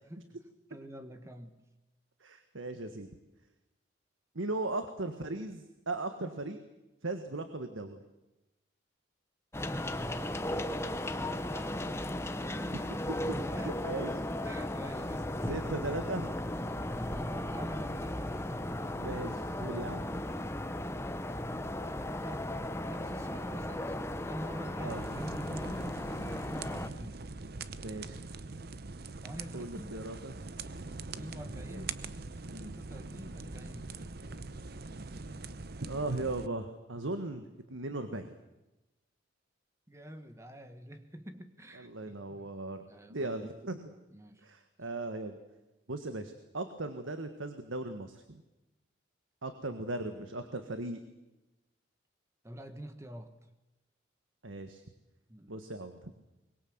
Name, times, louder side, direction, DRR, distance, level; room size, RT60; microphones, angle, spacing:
voice 1, 0.0-0.4 0.7-1.6 9.9-11.9 13.5-13.8 14.1-14.2 14.4-15.6 16.6-18.4 21.3-22.5 22.8-27.2 29.2-30.0 31.0-32.0 32.6-33.9 39.9-42.5 42.9-43.5 44.1-44.5 49.7-49.8 52.4-53.3 55.3-55.5, equal, 15° right, 8 dB, 1.6 m, -46 dB
voice 2, 2.2-3.1 4.3-6.6 7.0-8.0 12.7-12.9 13.6-14.1 15.5-16.3 19.0-20.1 24.8-25.0 27.8-28.2 29.5-30.3 31.0-31.3 31.7-31.8 32.5-32.8 35.8-38.3 41.8-42.8 43.1-43.9 44.4-45.4 45.9-48.4 49.4-51.0 54.4-54.8 55.5-56.1, right 2 dB, 80° right, 8 dB, 1.6 m, -38 dB
sound 1, 9.5-26.9, left 1 dB, 15° left, 0.9 m, -36 dB
sound 2, 24.9-36.5, right 3 dB, 50° right, 0.8 m, -43 dB
23.5 x 21.5 x 8.0 m, 1.0 s
head